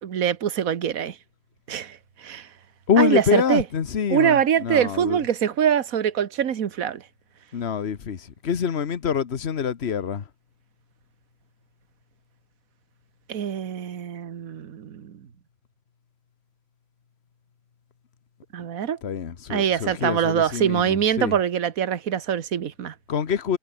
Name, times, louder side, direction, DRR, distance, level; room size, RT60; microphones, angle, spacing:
voice 1, 0.0-1.2 1.7-2.5 3.0-3.6 4.1-7.0 13.3-15.1 18.5-19.0 19.5-22.9, right 8 dB, 70° right, 1.6 m, -24 dB
voice 2, 2.9-5.2 7.5-10.3 19.0-21.4 23.1-23.6, left 7 dB, 45° left, 1.4 m, -25 dB
omnidirectional pair, 1.6 m